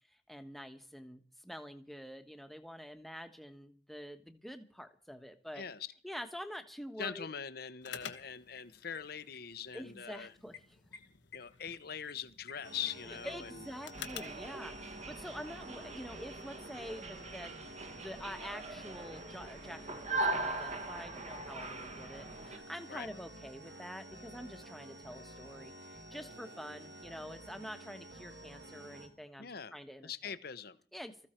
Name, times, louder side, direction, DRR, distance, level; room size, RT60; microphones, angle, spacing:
voice 1, 0.3-5.6 6.0-7.3 9.7-10.8 13.1-17.5 17.9-30.4 30.9-31.3, equal, ahead, 1.3 m, -47 dB
voice 2, 5.5-5.9 7.0-10.3 11.3-13.7 22.9-23.1 29.4-29.7 30.0-30.8, left 7 dB, 55° left, 1.0 m, -42 dB
sound 1, 7.8-14.5, left 8 dB, 90° left, 1.3 m, -50 dB
sound 2, 12.6-29.1, right 1 dB, 65° right, 3.7 m, -51 dB
sound 3, 13.9-22.6, right 2 dB, 40° right, 1.4 m, -41 dB
20.0 x 14.5 x 4.5 m
head